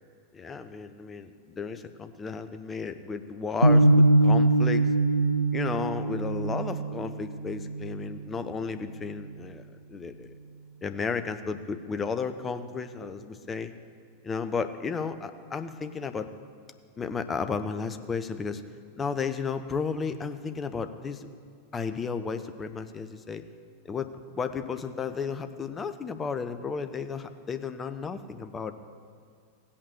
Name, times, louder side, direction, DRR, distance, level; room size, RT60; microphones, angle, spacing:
voice 1, 0.3-1.3 1.6-4.9 5.5-10.3 10.8-13.7 14.2-16.3 17.0-18.6 19.0-21.3 21.7-23.4 23.8-28.7, left 5 dB, 20° left, 10 dB, 0.7 m, -33 dB
sound 1, 3.6-9.7, right 2 dB, 85° right, 0.6 m, -24 dB
16.0 x 8.8 x 6.6 m, 2.2 s
figure-of-eight pair, 90°, 0 cm